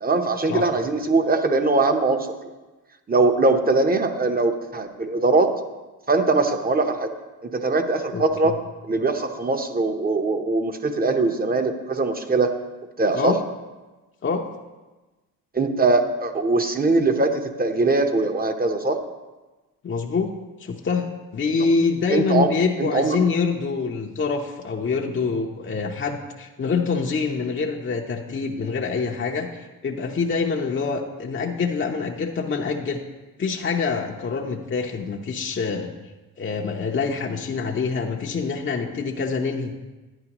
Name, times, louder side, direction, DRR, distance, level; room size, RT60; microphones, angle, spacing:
voice 1, 0.0-2.3 3.1-5.5 6.1-7.1 7.4-8.5 8.9-12.5 13.0-13.4 15.5-19.0 22.1-22.5 22.8-23.2, right 3 dB, 25° right, 6 dB, 0.9 m, -21 dB
voice 2, 8.1-8.6 13.1-13.4 14.2-14.4 19.8-20.3 20.6-21.1 21.3-33.0 33.4-35.9 36.4-39.7, left 5 dB, 30° left, 0 dB, 0.8 m, -25 dB
10.5 x 9.9 x 3.0 m, 1.2 s
cardioid pair, 80°, 37 cm